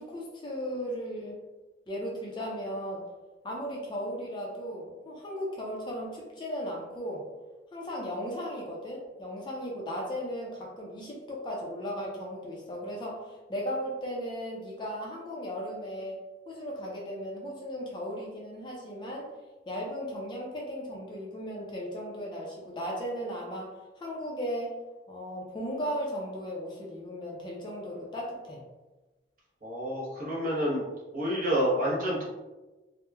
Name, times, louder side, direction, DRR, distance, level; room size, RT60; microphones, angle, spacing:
voice 1, 0.0-1.4 1.9-3.0 3.4-7.3 7.7-16.2 16.5-19.3 19.7-24.7 25.1-28.6, equal, 25° left, -2 dB, 0.4 m, -36 dB
voice 2, 29.6-30.8 31.1-32.2, equal, 45° right, -6 dB, 0.8 m, -28 dB
2.9 x 2.0 x 2.2 m, 1.1 s
head